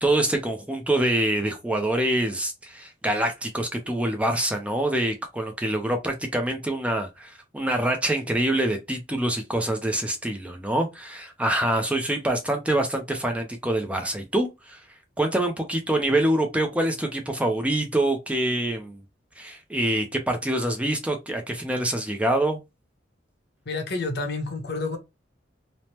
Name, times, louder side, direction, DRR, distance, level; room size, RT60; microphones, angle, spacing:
voice 1, 0.0-14.8 15.2-19.0 19.4-22.6, right 1 dB, 5° right, 0.4 m, -25 dB
voice 2, 23.7-25.0, left 3 dB, 60° left, 0.8 m, -29 dB
3.2 x 2.0 x 2.8 m
head